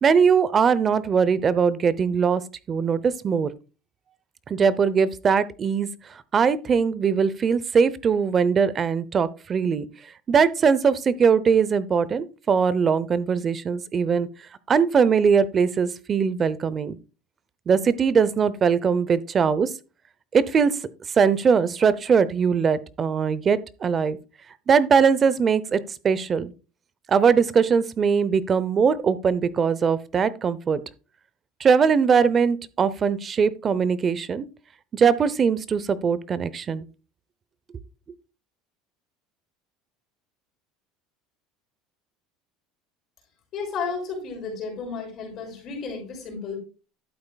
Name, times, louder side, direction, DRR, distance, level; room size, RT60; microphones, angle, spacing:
voice 1, 0.0-2.4 2.7-3.5 4.5-5.9 6.3-9.9 10.3-14.3 14.7-17.0 17.7-19.7 20.3-20.8 21.2-24.2 24.7-26.5 27.1-30.8 31.6-34.4 34.9-36.9, right 6 dB, 25° right, 0.7 m, -21 dB
voice 2, 43.5-46.6, left 5 dB, 40° left, 6.0 m, -32 dB
12.0 x 8.6 x 2.3 m
cardioid pair, 150°, 0 cm